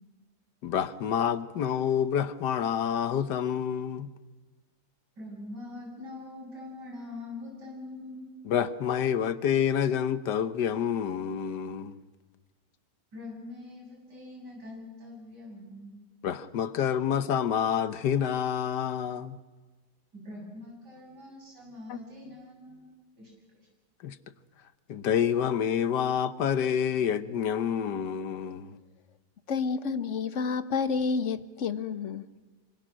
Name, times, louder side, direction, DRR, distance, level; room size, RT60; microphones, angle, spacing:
voice 1, 0.6-4.1 8.5-12.0 16.2-19.4 21.9-22.0 24.0-24.2 24.9-28.8, left 8 dB, 75° left, 1.5 m, -28 dB
voice 2, 5.2-8.3 13.1-16.0 20.1-22.8 23.2-23.7, left 2 dB, 75° right, 8.7 m, -43 dB
voice 3, 29.5-32.3, left 5 dB, 50° left, 1.2 m, -29 dB
26.5 x 25.5 x 6.4 m
omnidirectional pair, 1.8 m